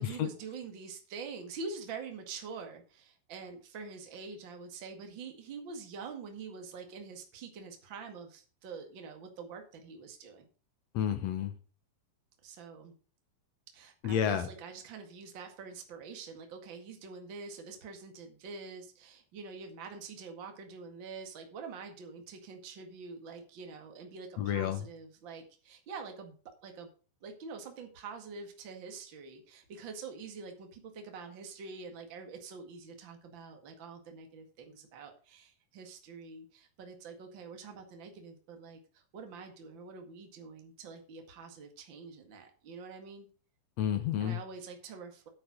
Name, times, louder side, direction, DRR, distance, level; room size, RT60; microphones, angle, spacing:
voice 1, 0.0-10.4 12.4-12.9 13.7-26.9 27.2-43.3 44.2-45.3, right 5 dB, 40° right, 4 dB, 2.2 m, -46 dB
voice 2, 10.9-11.5 14.0-14.5 24.4-24.8 43.8-44.4, left 9 dB, 65° left, 9 dB, 1.8 m, -30 dB
9.2 x 8.8 x 5.0 m, 0.37 s
omnidirectional pair, 4.3 m